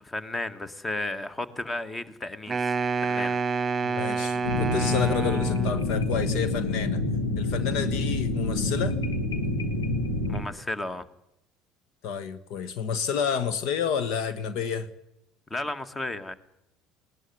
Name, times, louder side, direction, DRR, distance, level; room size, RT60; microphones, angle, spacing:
voice 1, 0.0-3.4 10.3-11.1 15.5-16.3, left 2 dB, 20° left, 13 dB, 1.9 m, -33 dB
Wind instrument woodwind instrument, 2.5-6.0, right 4 dB, 25° right, 1.2 m, -28 dB
voice 2, 3.8-7.0 7.4-9.0 12.0-14.9, left 7 dB, 60° left, 14 dB, 1.3 m, -30 dB
sound 1, 4.4-10.4, left 2 dB, 85° left, 2.5 m, -27 dB
20.0 x 19.0 x 9.7 m, 0.82 s
hypercardioid pair, 65°, 0 cm